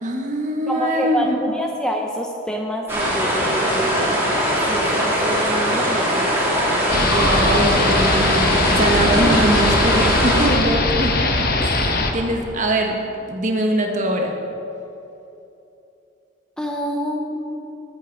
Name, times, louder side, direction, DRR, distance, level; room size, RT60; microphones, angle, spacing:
voice 1, 0.0-1.4 7.0-12.9 13.3-14.3, right 1 dB, 35° right, 2 dB, 1.5 m, -23 dB
voice 2, 0.7-6.4 16.6-17.8, equal, 5° left, 1 dB, 0.7 m, -27 dB
sound 1, 2.9-10.5, equal, 10° right, 3.0 m, -20 dB
sound 2, 6.9-12.1, left 2 dB, 45° left, 1.1 m, -20 dB
21.5 x 8.2 x 4.8 m, 2.9 s
head